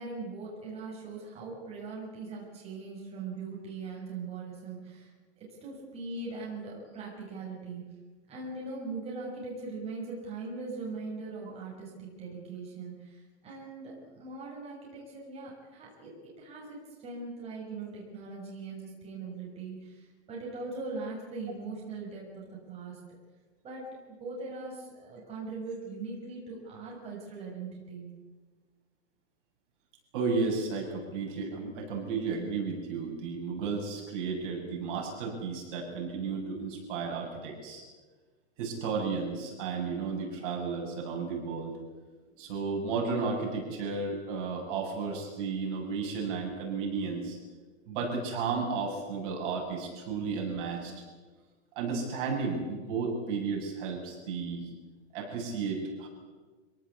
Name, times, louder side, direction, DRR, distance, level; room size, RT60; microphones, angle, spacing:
voice 1, 0.0-7.8 8.3-23.0 23.6-28.1, right 3 dB, 15° right, -4 dB, 6.4 m, -40 dB
voice 2, 30.1-37.8 38.6-41.7 42.4-47.4 47.9-50.9 51.8-54.7 55.1-56.1, right 4 dB, 45° right, 1 dB, 7.3 m, -33 dB
26.5 x 18.0 x 8.5 m, 1.4 s
supercardioid pair, 160°, 36 cm